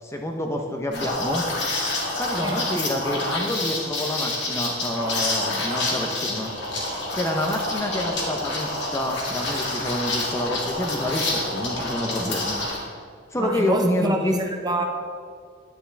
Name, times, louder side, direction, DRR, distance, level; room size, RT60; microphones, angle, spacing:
voice 1, 0.0-1.4 2.2-6.5 7.1-12.9 13.3-14.4, left 1 dB, 15° left, 2 dB, 0.7 m, -28 dB
Liquid, 0.9-12.8, left 2 dB, 60° left, 2.1 m, -28 dB
voice 2, 13.4-14.8, right 1 dB, 20° right, 2 dB, 0.8 m, -26 dB
9.9 x 9.5 x 3.4 m, 2.1 s
head